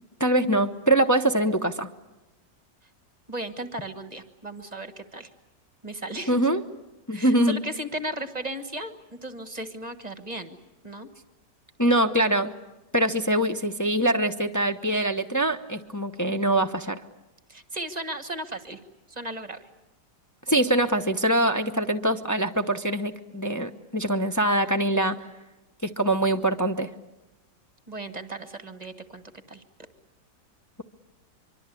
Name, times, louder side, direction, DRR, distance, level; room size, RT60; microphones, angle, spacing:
voice 1, 0.2-1.9 6.3-6.6 7.1-7.6 11.8-12.5 12.9-17.0 20.5-25.2 25.8-26.9, right 1 dB, 20° left, 5 dB, 0.5 m, -23 dB
voice 2, 3.3-5.3 5.8-6.5 7.1-10.6 10.8-11.1 17.5-18.8 19.1-19.7 27.9-29.2 29.5-29.6, right 1 dB, 25° right, 9 dB, 1.3 m, -36 dB
24.5 x 24.5 x 8.4 m, 1.0 s
omnidirectional pair, 1.9 m